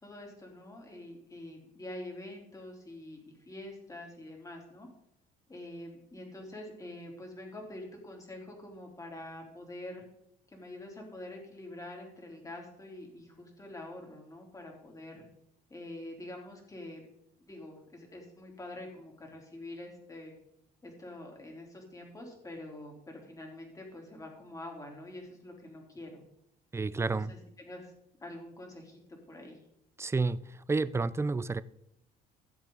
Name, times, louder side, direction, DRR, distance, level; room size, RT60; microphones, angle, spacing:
voice 1, 0.0-4.9 5.5-10.0 10.5-15.3 15.7-17.0 17.4-20.3 20.8-26.2 27.1-27.9 28.2-29.6, left 1 dB, 20° left, 3.4 m, -46 dB
voice 2, 26.7-27.3 30.0-31.6, right 3 dB, 15° right, 0.4 m, -30 dB
16.0 x 7.6 x 3.9 m
cardioid pair, 110°, 17 cm